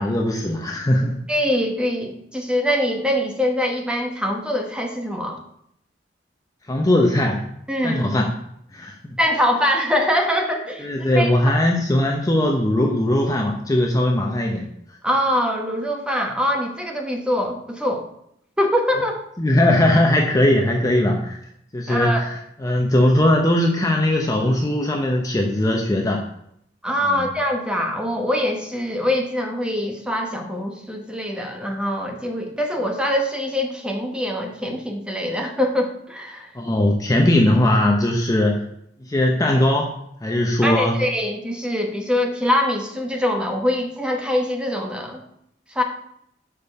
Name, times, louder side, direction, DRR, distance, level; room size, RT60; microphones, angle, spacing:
voice 1, 0.0-1.2 6.7-7.4 7.8-8.3 8.7-8.9 10.8-14.7 19.4-21.4 21.7-26.3 27.1-27.2 36.5-38.6 39.0-39.9 40.2-41.0, left 1 dB, 20° left, 1 dB, 0.7 m, -19 dB
voice 2, 1.3-5.4 7.7-8.1 9.2-11.5 15.0-18.0 18.6-19.2 21.9-22.3 26.8-36.5 40.6-45.2 45.7-45.8, left 1 dB, 5° right, 2 dB, 1.0 m, -23 dB
6.8 x 5.2 x 5.3 m, 0.73 s
head